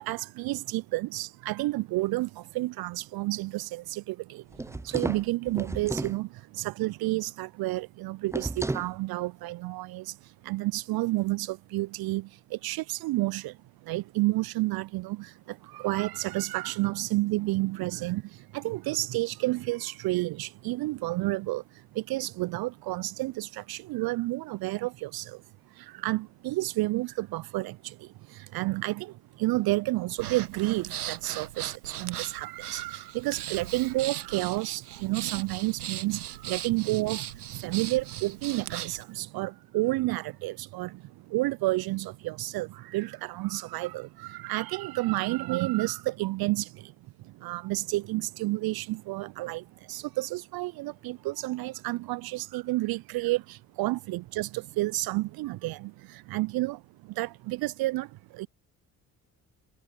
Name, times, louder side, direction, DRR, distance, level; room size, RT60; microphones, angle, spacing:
voice 1, 0.0-25.4 25.7-58.5, right 19 dB, 55° right, 0.8 m, -31 dB
sound 1, 4.5-6.2 8.3-8.9, right 2 dB, 5° right, 0.7 m, -33 dB
Breathing, 30.2-39.0, right 12 dB, 85° right, 1.4 m, -38 dB
figure-of-eight pair, 50°, 45 cm